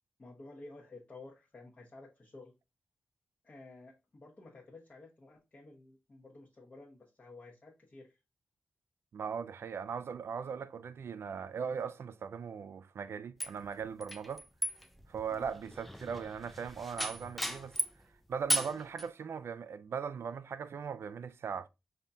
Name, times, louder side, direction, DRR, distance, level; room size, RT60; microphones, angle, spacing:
voice 1, 0.2-2.5 3.4-8.2 15.3-15.4, left 2 dB, 35° left, 1.1 m, -53 dB
voice 2, 9.1-14.4 15.1-17.8 18.3-21.7, right 6 dB, 75° right, 0.4 m, -39 dB
sound 1, 13.4-18.0 18.5-19.1, equal, ahead, 0.4 m, -36 dB
5.4 x 2.7 x 3.4 m
wide cardioid pair, 135°, 4 cm